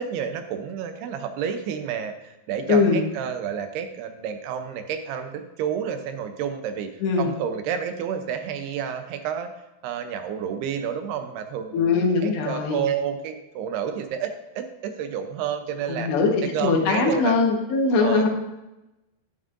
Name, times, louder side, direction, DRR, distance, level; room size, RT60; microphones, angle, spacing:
voice 1, 0.0-9.5 9.8-16.1 16.4-17.4 17.9-18.3, right 8 dB, 80° right, 7 dB, 2.7 m, -30 dB
voice 2, 2.7-3.0 7.0-7.3 11.7-12.8 15.9-18.3, left 4 dB, 85° left, 1 dB, 3.5 m, -21 dB
11.0 x 9.9 x 2.6 m, 0.97 s
omnidirectional pair, 4.8 m